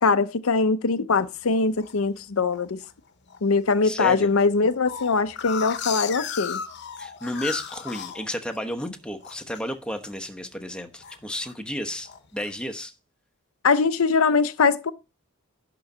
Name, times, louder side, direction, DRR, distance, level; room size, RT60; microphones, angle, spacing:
voice 1, 0.0-2.8 3.4-6.6 13.6-14.9, left 4 dB, 85° left, 0.7 m, -22 dB
sound 1, 1.2-2.0 2.5-2.9 3.3-3.4 3.6-3.7 4.1-8.9 9.2-9.6 10.0-10.3 10.6-11.6 12.0-12.5, left 8 dB, 55° left, 1.0 m, -35 dB
voice 2, 3.8-4.3 7.0-12.9, equal, 5° left, 1.1 m, -32 dB
11.5 x 3.9 x 7.3 m
head